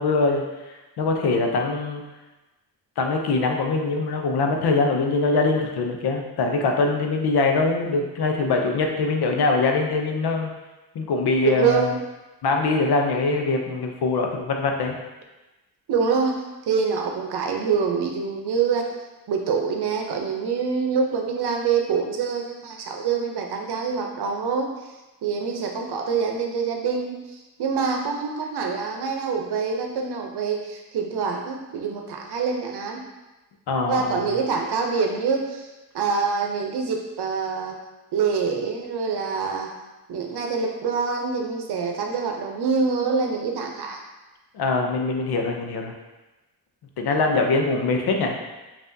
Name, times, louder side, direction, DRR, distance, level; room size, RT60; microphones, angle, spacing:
voice 1, 0.0-2.0 3.0-10.5 10.9-11.8 12.4-15.0 33.7-34.2 44.5-45.9 47.0-48.4, left 3 dB, 80° left, 2 dB, 0.6 m, -23 dB
voice 2, 11.4-11.9 15.9-18.9 19.3-24.9 25.2-33.0 33.9-35.7 35.9-37.8 38.1-39.7 40.1-44.0, right 5 dB, 85° right, 2 dB, 0.7 m, -25 dB
5.5 x 2.6 x 2.6 m, 1.1 s
wide cardioid pair, 155°, 38 cm